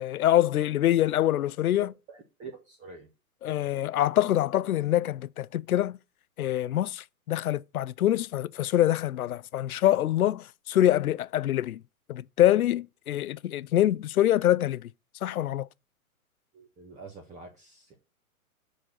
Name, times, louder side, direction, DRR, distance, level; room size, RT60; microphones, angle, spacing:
voice 1, 0.0-1.9 3.4-6.0 6.4-11.8 12.1-14.9 15.2-15.7, left 12 dB, 75° left, 0.6 m, -25 dB
voice 2, 1.8-3.1 16.5-17.9, right 4 dB, 15° right, 1.1 m, -46 dB
6.4 x 4.4 x 6.5 m
hypercardioid pair, 130°, 44 cm